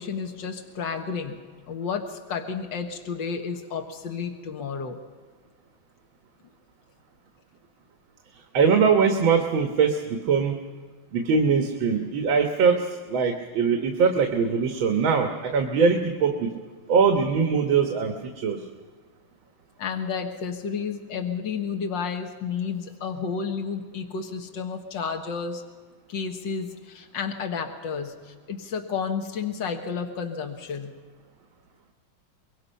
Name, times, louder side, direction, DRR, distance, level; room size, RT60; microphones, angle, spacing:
voice 1, 0.0-1.4 1.7-5.0 19.8-25.6 26.1-30.9, left 6 dB, 65° left, 4 dB, 2.2 m, -31 dB
voice 2, 8.5-10.6 11.1-16.5 16.9-18.6, right 5 dB, 80° right, 5 dB, 2.2 m, -22 dB
25.5 x 22.0 x 5.7 m, 1.5 s
omnidirectional pair, 2.2 m